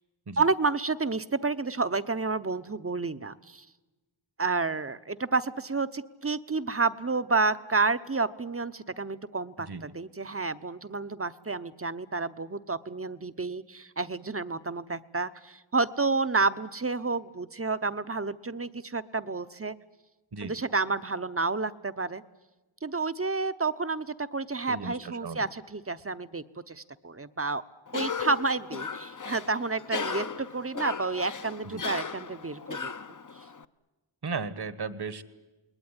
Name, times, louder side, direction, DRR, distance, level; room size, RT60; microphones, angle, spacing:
voice 1, 0.4-3.6 4.4-19.7 20.4-22.2 22.8-27.6 27.9-32.8, right 3 dB, 30° right, 13 dB, 0.8 m, -30 dB
voice 2, 24.7-25.5 31.6-31.8 34.2-35.2, right 4 dB, 50° right, 15 dB, 1.3 m, -36 dB
Cough, 27.9-33.6, left 5 dB, 40° left, 0.8 m, -36 dB
28.5 x 20.0 x 9.8 m, 1.1 s
wide cardioid pair, 85°, 49 cm